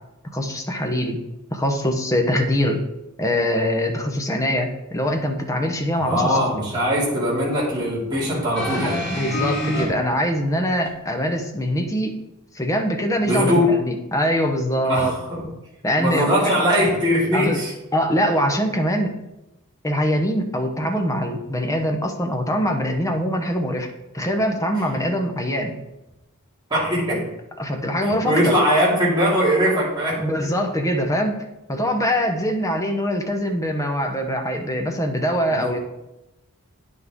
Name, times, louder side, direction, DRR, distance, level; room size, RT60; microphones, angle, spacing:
voice 1, 0.3-1.2 1.5-2.8 3.2-6.6 8.7-12.2 12.5-15.2 15.4-15.5 15.8-16.6 17.3-17.6 17.9-19.2 19.8-23.9 24.1-25.8 27.1-27.2 27.6-28.6 30.2-35.8, equal, 15° left, 4 dB, 0.9 m, -23 dB
voice 2, 6.0-9.0 13.2-13.7 14.8-15.4 16.0-17.7 26.7-27.2 28.0-30.2 35.5-35.8, equal, 20° right, -7 dB, 2.7 m, -21 dB
sound 1, 8.5-9.8 10.8-10.9, equal, 50° left, 3.2 m, -26 dB
9.5 x 6.0 x 3.7 m, 0.94 s
head